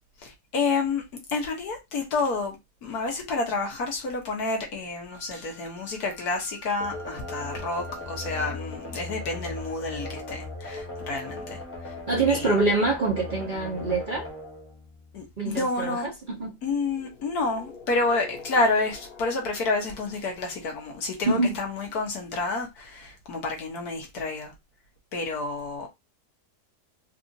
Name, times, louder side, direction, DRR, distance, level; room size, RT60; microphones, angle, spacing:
voice 1, 0.2-1.0 1.3-11.9 12.3-12.6 15.1-16.1 16.6-24.5 25.1-25.9, left 3 dB, 70° left, 1.5 m, -29 dB
Wind instrument woodwind instrument, 5.1-8.4, right 5 dB, 75° right, 1.4 m, -49 dB
sound 1, 6.8-15.5, left 2 dB, 15° left, 0.5 m, -38 dB
voice 2, 12.1-14.3 15.4-16.5 21.3-21.5, right 3 dB, 40° right, 0.8 m, -25 dB
sound 2, 16.7-21.6, left 4 dB, 40° left, 1.1 m, -47 dB
4.1 x 2.5 x 2.7 m
omnidirectional pair, 1.8 m